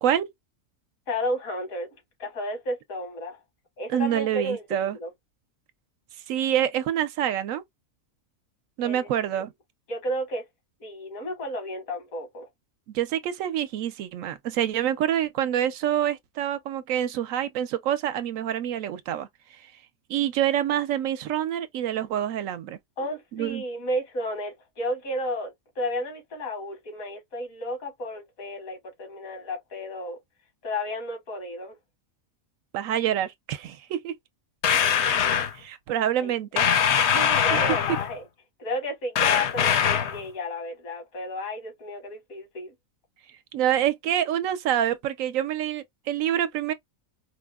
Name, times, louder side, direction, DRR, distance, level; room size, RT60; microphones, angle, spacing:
voice 1, 0.0-0.3 3.9-5.0 6.3-7.6 8.8-9.5 12.9-19.3 19.6-19.7 20.1-22.8 23.3-23.6 32.7-34.2 35.5-36.7 37.5-37.6 43.5-46.7, right 11 dB, 75° right, 0.9 m, -26 dB
voice 2, 1.1-1.9 2.2-3.4 3.8-5.1 8.8-9.4 9.9-10.5 10.8-12.5 23.0-30.2 30.6-31.8 36.2-36.3 37.0-38.2 38.6-42.8, left 1 dB, 85° left, 1.8 m, -32 dB
sound 1, 34.6-35.5 36.6-38.1 39.1-40.2, left 8 dB, 65° left, 0.8 m, -22 dB
4.7 x 2.1 x 2.2 m
omnidirectional pair, 1.4 m